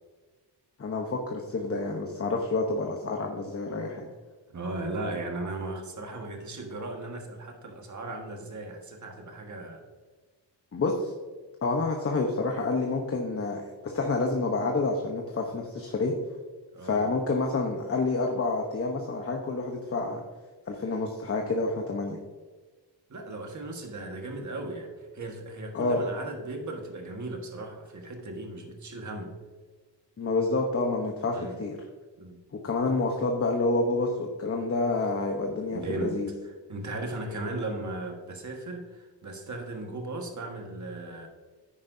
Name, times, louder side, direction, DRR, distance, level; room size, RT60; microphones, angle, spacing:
voice 1, 0.8-4.1 10.7-11.1 11.6-16.1 16.8-20.2 20.7-22.2 25.7-26.0 30.2-31.8 32.5-36.3, left 3 dB, 35° left, 2 dB, 0.9 m, -28 dB
voice 2, 4.5-9.8 16.7-17.1 23.1-29.3 31.3-31.6 32.2-32.4 35.7-41.3, right 2 dB, 45° right, 3 dB, 1.5 m, -37 dB
9.9 x 9.8 x 2.7 m, 1.4 s
wide cardioid pair, 125°, 43 cm